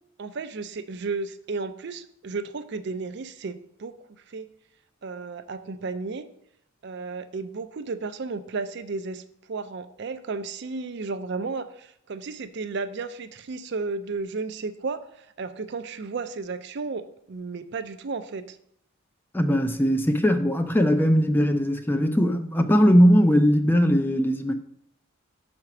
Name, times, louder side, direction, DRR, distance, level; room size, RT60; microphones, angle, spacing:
voice 1, 0.2-4.0 4.3-4.5 5.0-6.3 6.8-9.2 9.5-18.6, right 4 dB, 55° right, 0.4 m, -33 dB
voice 2, 19.3-24.5, equal, 10° left, 0.4 m, -20 dB
5.8 x 4.3 x 5.9 m
head